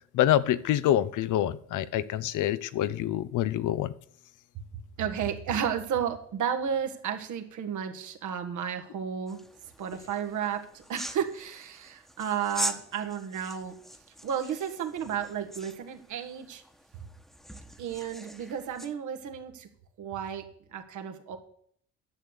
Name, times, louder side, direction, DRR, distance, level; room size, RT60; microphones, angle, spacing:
voice 1, 0.1-3.9, left 12 dB, 85° left, 16 dB, 0.7 m, -26 dB
voice 2, 5.0-9.4 9.8-13.7 14.2-16.6 17.8-19.7 20.0-20.4 20.7-21.4, right 8 dB, 75° right, 6 dB, 1.7 m, -32 dB
sound 1, 9.3-19.0, equal, ahead, 1.2 m, -42 dB
10.5 x 6.9 x 8.1 m, 0.65 s
cardioid pair, 90°, 30 cm